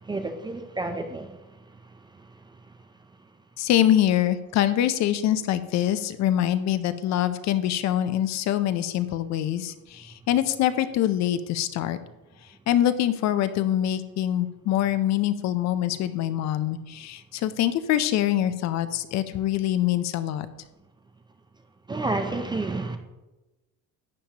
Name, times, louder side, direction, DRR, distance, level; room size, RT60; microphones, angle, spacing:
voice 1, 0.0-1.4 21.9-23.0, right 2 dB, 15° right, 6 dB, 0.4 m, -30 dB
voice 2, 3.6-12.0 12.7-20.5, left 12 dB, 50° left, 12 dB, 0.6 m, -24 dB
11.5 x 8.7 x 2.9 m, 1.1 s
cardioid pair, 160°, 36 cm